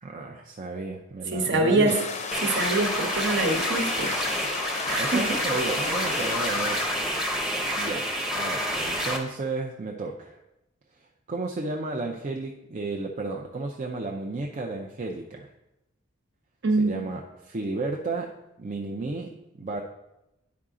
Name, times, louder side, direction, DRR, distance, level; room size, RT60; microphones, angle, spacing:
voice 1, 0.0-2.0 5.0-6.9 7.7-10.4 10.9-15.5 16.8-19.8, right 3 dB, 35° right, 0 dB, 0.5 m, -33 dB
voice 2, 1.3-2.0 2.4-4.1 4.8-5.2 16.6-16.9, right 2 dB, 55° right, 3 dB, 1.1 m, -24 dB
sound 1, 1.9-6.8, left 4 dB, 30° left, 0.6 m, -34 dB
sound 2, 2.3-9.2, equal, ahead, 0.8 m, -28 dB
9.4 x 4.8 x 3.7 m, 0.91 s
head